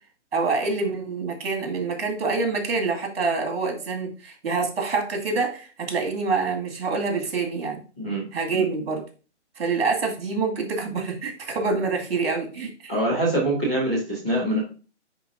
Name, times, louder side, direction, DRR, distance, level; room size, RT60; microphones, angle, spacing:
voice 1, 0.3-7.8 8.3-9.0 9.6-12.9, right 4 dB, 55° right, 2 dB, 2.3 m, -26 dB
voice 2, 12.9-14.6, right 1 dB, 5° left, -11 dB, 0.4 m, -24 dB
9.9 x 3.7 x 2.7 m, 0.36 s
hypercardioid pair, 150°, 35 cm